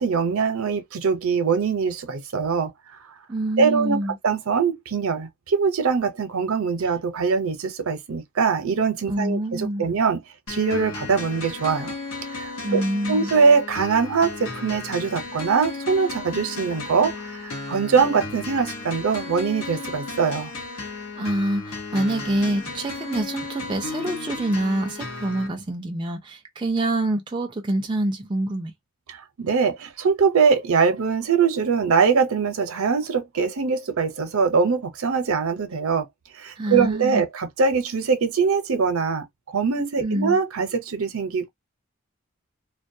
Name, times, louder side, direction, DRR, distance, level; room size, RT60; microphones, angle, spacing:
voice 1, 0.0-2.7 3.6-4.0 4.2-10.2 10.5-11.9 12.4-12.8 13.1-20.5 29.1-36.1 36.4-41.5, right 5 dB, 80° right, 0.6 m, -22 dB
voice 2, 3.3-4.2 9.1-9.9 12.6-13.3 21.1-28.7 36.6-37.2 40.0-40.4, right 1 dB, 20° right, 0.4 m, -26 dB
sound 1, 10.5-25.5, left 3 dB, 85° left, 1.0 m, -34 dB
2.2 x 2.1 x 2.6 m
head